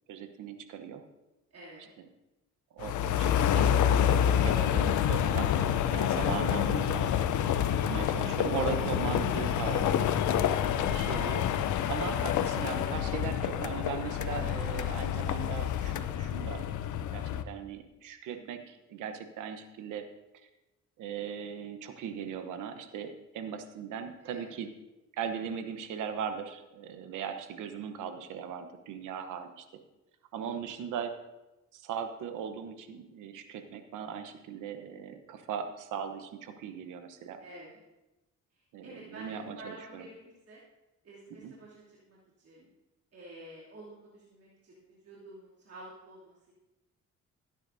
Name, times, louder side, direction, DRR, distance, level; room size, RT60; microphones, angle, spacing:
voice 1, 0.1-1.0 2.0-2.1 2.7-4.0 4.3-7.1 7.8-10.0 10.7-11.5 11.9-16.6 17.1-20.1 21.0-24.7 25.1-29.7 30.3-31.1 31.7-37.4 38.7-40.1 41.3-41.5, right 7 dB, 85° right, 8 dB, 1.1 m, -38 dB
voice 2, 1.5-1.9 9.4-9.5 18.3-18.4 24.2-24.6 30.4-30.7 37.4-37.8 38.8-40.2 40.5-40.6 41.0-41.7 42.1-42.7 43.1-46.5, right 1 dB, 55° right, -7 dB, 2.9 m, -50 dB
sound 1, 2.8-17.4, left 9 dB, 75° left, 0.7 m, -28 dB
17.0 x 9.8 x 2.7 m, 1.0 s
cardioid pair, 90°, 30 cm